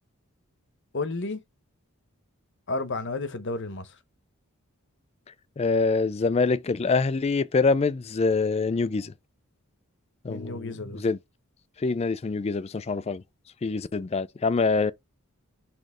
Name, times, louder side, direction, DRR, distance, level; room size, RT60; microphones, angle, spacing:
voice 1, 0.9-1.4 2.7-4.0 10.3-11.0, left 3 dB, 55° left, 0.9 m, -32 dB
voice 2, 5.6-9.1 10.2-11.2 11.8-13.2 13.6-14.9, left 4 dB, 30° left, 0.3 m, -25 dB
6.3 x 3.1 x 4.8 m
head